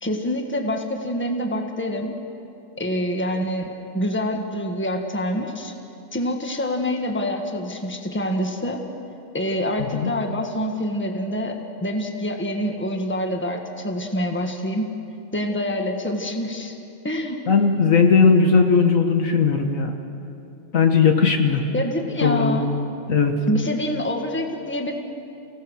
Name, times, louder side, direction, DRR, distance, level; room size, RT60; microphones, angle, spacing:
voice 1, 0.0-2.2 2.8-5.7 6.1-8.8 9.3-14.9 15.3-16.8 17.0-17.4 21.7-22.7 23.5-24.9, equal, 10° left, 3 dB, 1.5 m, -26 dB
voice 2, 17.5-19.9 20.7-21.6 22.2-22.6 23.1-23.4, left 5 dB, 70° left, 4 dB, 1.8 m, -17 dB
28.5 x 17.0 x 6.4 m, 2.7 s
omnidirectional pair, 1.4 m